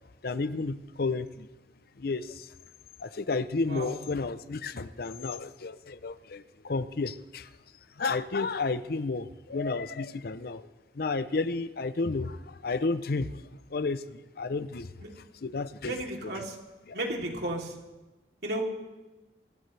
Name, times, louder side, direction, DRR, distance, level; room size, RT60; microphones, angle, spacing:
voice 1, 0.2-1.5 2.0-2.5 3.0-7.5 8.0-10.6 10.9-13.3 13.7-14.9 15.4-15.9, left 3 dB, 60° left, 14 dB, 0.6 m, -31 dB
voice 2, 3.7-4.0 15.0-15.1 15.8-16.6 16.9-17.8 18.4-18.6, right 1 dB, 65° right, 0 dB, 3.1 m, -33 dB
24.0 x 18.0 x 3.3 m, 1.1 s
head